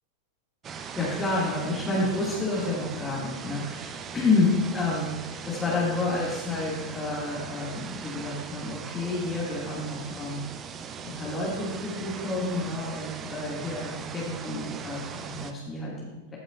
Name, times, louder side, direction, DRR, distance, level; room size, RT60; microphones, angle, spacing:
sound 1, 0.6-15.5, right 6 dB, 25° right, 0.6 m, -39 dB
voice 1, 0.7-16.4, left 2 dB, 15° left, -6 dB, 2.4 m, -30 dB
14.5 x 6.7 x 2.6 m, 1.1 s
figure-of-eight pair, 90°, 0 cm